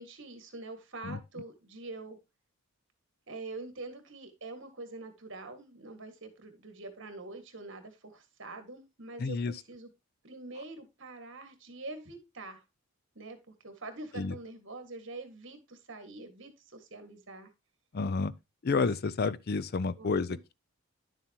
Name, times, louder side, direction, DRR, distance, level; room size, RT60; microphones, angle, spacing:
voice 1, 0.0-2.2 3.3-9.9 10.2-12.6 13.2-17.5 20.0-20.5, right 2 dB, 55° right, 1.8 m, -45 dB
voice 2, 9.2-9.5 14.2-14.3 17.9-18.3 18.6-20.5, left 4 dB, 45° left, 0.4 m, -30 dB
11.0 x 7.3 x 2.9 m
head